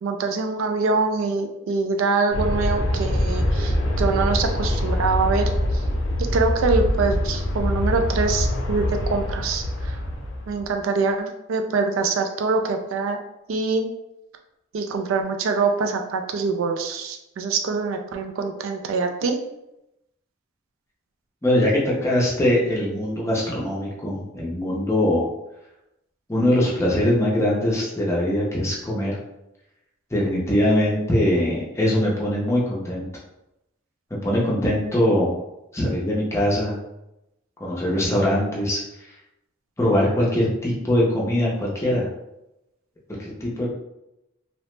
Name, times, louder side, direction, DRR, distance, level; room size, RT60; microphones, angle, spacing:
voice 1, 0.0-5.9 6.3-10.0 10.5-13.2 13.5-13.9 14.7-19.4, right 4 dB, 85° right, 5 dB, 0.3 m, -24 dB
Aircraft, 2.3-10.7, left 1 dB, 70° left, 0.5 m, -24 dB
voice 2, 21.4-25.3 26.3-29.2 30.1-33.1 34.2-35.4 35.7-36.8 37.6-38.8 39.8-42.1 43.2-43.7, left 1 dB, 15° left, -5 dB, 0.5 m, -22 dB
2.8 x 2.0 x 3.1 m, 0.90 s
head